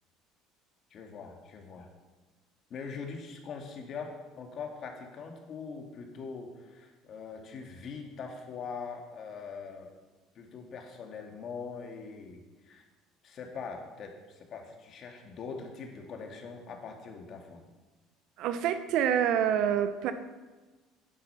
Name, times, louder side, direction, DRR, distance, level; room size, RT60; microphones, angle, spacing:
voice 1, 0.9-1.9 2.7-9.9 10.3-12.8 13.2-17.6, left 5 dB, 45° left, 3 dB, 2.2 m, -42 dB
voice 2, 18.4-20.1, right 9 dB, 65° right, 10 dB, 0.9 m, -27 dB
10.0 x 10.0 x 5.7 m, 1.2 s
cardioid pair, 115°, 0 cm